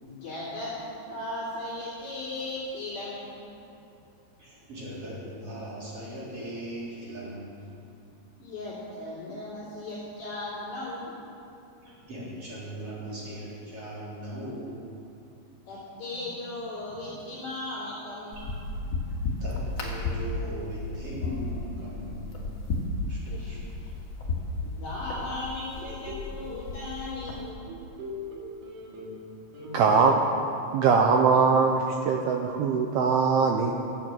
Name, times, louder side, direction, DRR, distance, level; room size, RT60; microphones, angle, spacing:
voice 1, 0.0-3.4 8.4-11.2 15.7-18.4 23.3-23.9 24.6-27.4, left 2 dB, 50° left, -9 dB, 4.0 m, -37 dB
voice 2, 4.4-7.7 11.8-14.8 16.1-16.3 16.8-17.0 19.4-22.5 23.1-23.6, right 1 dB, 30° right, -8 dB, 4.4 m, -39 dB
sound 1, 18.3-27.5, left 3 dB, 65° left, 1.1 m, -34 dB
sound 2, 25.8-26.6 27.0-29.3 29.5-30.1, left 1 dB, 55° right, 2.9 m, -40 dB
voice 3, 29.7-30.2 30.7-33.7, right 5 dB, 85° right, 2 dB, 2.3 m, -21 dB
15.0 x 8.6 x 7.7 m, 2.6 s
omnidirectional pair, 5.3 m